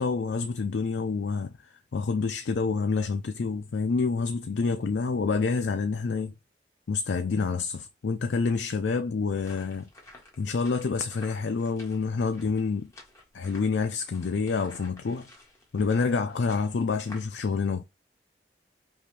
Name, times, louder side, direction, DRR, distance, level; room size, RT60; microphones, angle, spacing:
voice 1, 0.0-1.5 1.9-6.3 6.9-9.9 10.4-12.9 13.3-15.3 15.7-17.8, left 4 dB, 85° left, 0.5 m, -27 dB
sound 1, 9.4-17.3, left 2 dB, 15° left, 1.5 m, -52 dB
5.7 x 2.5 x 3.2 m
head